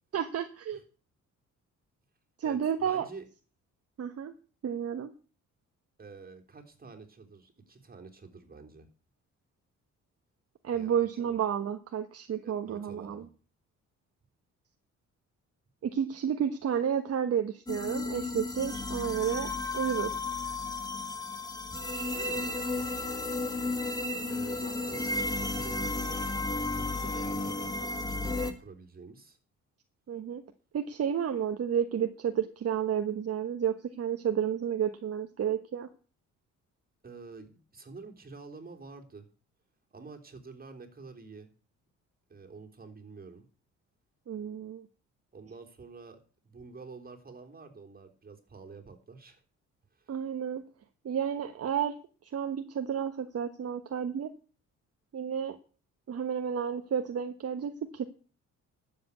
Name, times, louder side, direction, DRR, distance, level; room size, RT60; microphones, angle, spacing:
voice 1, 0.1-0.8 2.4-3.1 4.0-4.3 4.6-5.1 10.6-13.3 15.8-20.1 30.1-30.4 30.7-35.9 44.3-44.8 50.1-50.6 51.0-51.9 52.2-54.3 55.1-55.6 56.1-58.0, right 8 dB, 55° right, 7 dB, 1.3 m, -31 dB
voice 2, 2.4-3.3 6.0-8.9 10.7-11.0 11.2-11.4 12.4-13.3 22.1-22.9 24.3-26.2 26.7-29.4 37.0-39.3 39.9-41.5 42.3-43.4 45.3-49.4 49.9-50.1, right 4 dB, 30° right, 4 dB, 3.5 m, -48 dB
sound 1, 17.7-28.5, left 2 dB, 10° left, 2.3 m, -33 dB
12.0 x 7.9 x 8.4 m, 0.38 s
cardioid pair, 90°, 30 cm